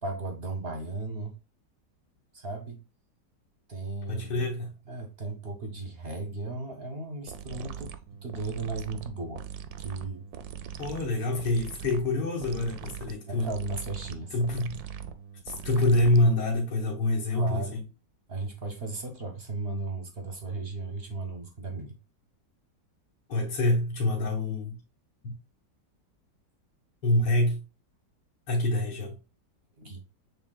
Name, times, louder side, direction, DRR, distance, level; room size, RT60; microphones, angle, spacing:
voice 1, 0.0-1.3 2.3-2.8 3.7-4.5 4.9-9.5 9.8-10.2 13.3-14.4 15.6-15.8 17.3-17.8 18.3-22.0 29.8-30.0, right 3 dB, 50° right, 0.7 m, -36 dB
voice 2, 4.1-4.7 10.8-13.5 14.3-14.8 15.4-17.8 23.3-24.8 25.2-25.4 27.0-27.6 28.5-29.2, left 1 dB, 75° left, 1.7 m, -26 dB
sound 1, 7.3-16.5, right 8 dB, 70° right, 1.0 m, -41 dB
6.8 x 3.3 x 2.3 m
omnidirectional pair, 1.9 m